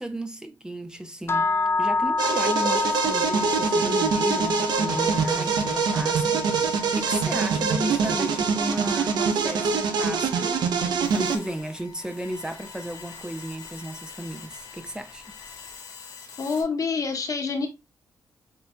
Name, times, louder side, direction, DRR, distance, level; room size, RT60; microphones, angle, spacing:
voice 1, 0.0-1.5 1.8-10.6 11.1-15.2, right 1 dB, 10° right, 0.6 m, -34 dB
sound 1, 1.3-11.4, left 3 dB, 35° left, 0.3 m, -30 dB
sound 2, 2.2-11.4, right 5 dB, 80° right, 0.7 m, -24 dB
sound 3, 11.0-16.6, left 6 dB, 90° left, 2.0 m, -44 dB
voice 2, 16.4-17.7, left 4 dB, 50° left, 1.1 m, -27 dB
7.5 x 2.7 x 2.2 m
cardioid pair, 65°, 7 cm